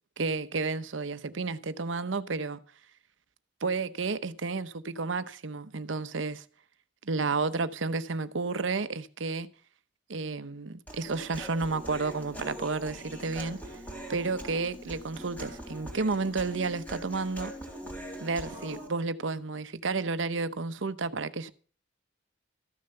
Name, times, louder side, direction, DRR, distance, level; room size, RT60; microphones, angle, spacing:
voice 1, 0.2-2.6 3.6-6.4 7.0-9.5 10.1-13.6 14.1-17.5 18.2-21.5, right 4 dB, 85° right, 0.8 m, -31 dB
Human voice, 10.9-18.9, right 1 dB, 10° left, 3.2 m, -42 dB
14.0 x 6.9 x 6.6 m
head